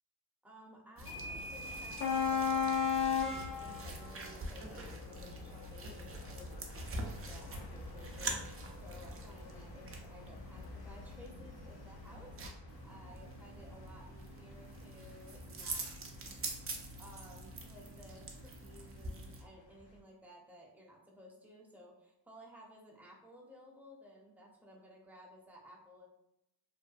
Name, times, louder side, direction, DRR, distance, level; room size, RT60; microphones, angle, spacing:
voice 1, 0.4-2.9 3.2-12.4 12.6-16.4 17.0-26.1, equal, 5° right, -3 dB, 0.7 m, -56 dB
sound 1, 1.0-19.4, right 2 dB, 30° right, 0.5 m, -46 dB
sound 2, 1.1-18.8, left 6 dB, 60° left, 0.6 m, -40 dB
2.6 x 2.1 x 2.3 m, 0.85 s
cardioid pair, 60°, 43 cm